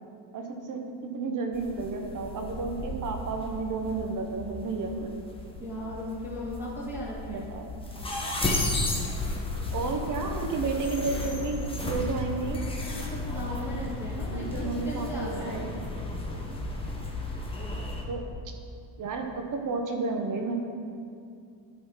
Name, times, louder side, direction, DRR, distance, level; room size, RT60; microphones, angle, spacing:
voice 1, 0.3-5.1 7.3-7.7 9.7-12.6 14.3-15.7 18.1-18.5 19.0-20.6, right 4 dB, 40° right, 4 dB, 1.1 m, -32 dB
sound 1, 1.5-18.0, left 2 dB, 10° left, 1.1 m, -34 dB
voice 2, 5.6-7.5 12.9-15.6, equal, 5° right, -8 dB, 2.4 m, -37 dB
12.0 x 4.2 x 5.6 m, 2.4 s
cardioid pair, 130°, 47 cm